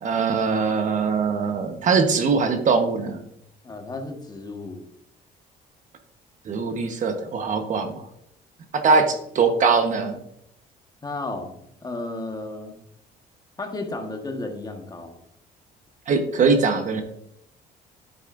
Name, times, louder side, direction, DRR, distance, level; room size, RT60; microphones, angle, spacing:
voice 1, 0.0-3.2 6.5-8.0 8.7-10.2 16.1-17.0, right 4 dB, 50° right, 6 dB, 1.2 m, -21 dB
voice 2, 3.6-4.8 11.0-12.7 13.6-15.2, left 2 dB, 25° left, 4 dB, 1.4 m, -33 dB
10.5 x 8.1 x 2.6 m, 0.74 s
cardioid pair, 110°, 17 cm